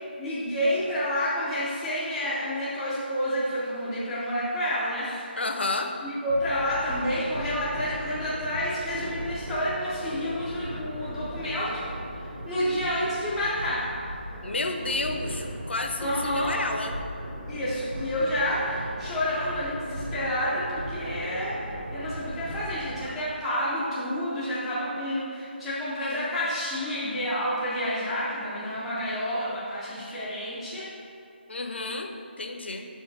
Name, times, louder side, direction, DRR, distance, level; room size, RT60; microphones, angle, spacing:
voice 1, 0.2-5.3 6.0-11.9 12.5-13.9 16.0-16.5 17.5-30.9, equal, ahead, -13 dB, 0.4 m, -29 dB
voice 2, 5.4-5.9 14.4-17.0 31.5-32.9, left 2 dB, 70° left, 4 dB, 0.7 m, -31 dB
sound 1, 6.3-23.0, equal, 45° right, 1.1 m, -37 dB
5.7 x 4.6 x 4.5 m, 2.5 s
figure-of-eight pair, 175°, 6 cm